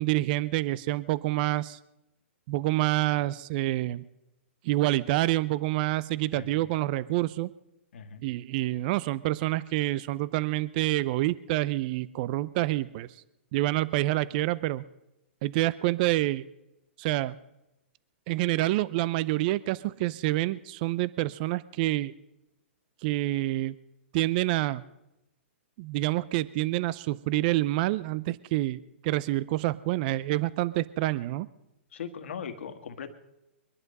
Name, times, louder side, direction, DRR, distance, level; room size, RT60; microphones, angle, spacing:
voice 1, 0.0-1.8 2.5-4.0 4.6-7.5 8.2-13.1 13.5-14.8 15.4-16.5 17.0-17.4 18.3-22.1 23.0-23.7 24.1-24.8 25.8-31.5, right 17 dB, 45° right, 18 dB, 0.5 m, -27 dB
voice 2, 6.3-6.7 7.9-8.2 31.9-33.1, left 7 dB, 70° left, 7 dB, 1.8 m, -39 dB
23.0 x 11.0 x 5.4 m, 0.92 s
hypercardioid pair, 135°, 7 cm